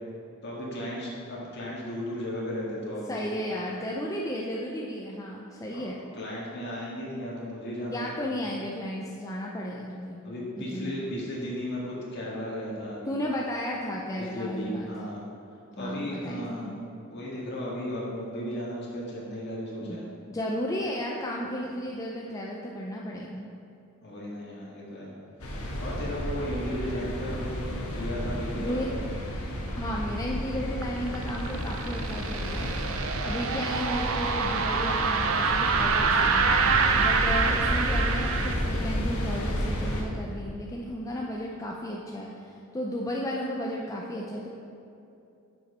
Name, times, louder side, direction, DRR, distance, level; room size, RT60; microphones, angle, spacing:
voice 1, 0.4-3.2 5.7-5.8 6.1-8.3 10.2-13.1 14.2-15.2 15.8-16.8 17.1-20.0 24.0-25.2 25.8-28.8, equal, 50° left, -5 dB, 1.9 m, -35 dB
voice 2, 3.1-6.0 7.9-10.2 10.6-11.0 13.1-14.9 15.8-16.8 19.8-20.0 20.3-23.5 28.6-28.9 29.8-32.7 33.2-36.6 36.9-44.5, equal, 15° left, -2 dB, 0.5 m, -34 dB
sound 1, 25.4-40.0, equal, 85° left, 1.2 m, -32 dB
sound 2, 30.8-38.5, right 5 dB, 70° right, 0.6 m, -26 dB
7.1 x 5.0 x 5.5 m, 2.7 s
head